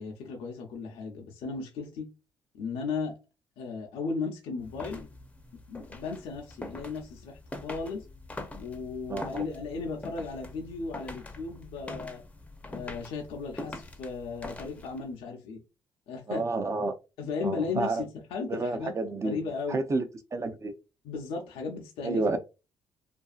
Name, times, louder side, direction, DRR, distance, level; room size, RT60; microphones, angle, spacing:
voice 1, 0.0-2.1 2.5-3.2 3.6-5.1 5.5-8.1 8.6-12.2 12.7-15.6 16.1-16.4 17.2-18.9 19.2-19.8 21.0-22.2, left 4 dB, 80° left, 0.6 m, -35 dB
sound 1, 4.6-15.1, left 2 dB, 15° left, 0.6 m, -44 dB
voice 2, 9.1-9.4 16.3-16.9 17.4-18.0 18.5-19.4 19.7-20.1 20.3-20.7 22.0-22.4, right 3 dB, 35° right, 0.5 m, -30 dB
2.6 x 2.4 x 2.3 m
supercardioid pair, 70°, 9 cm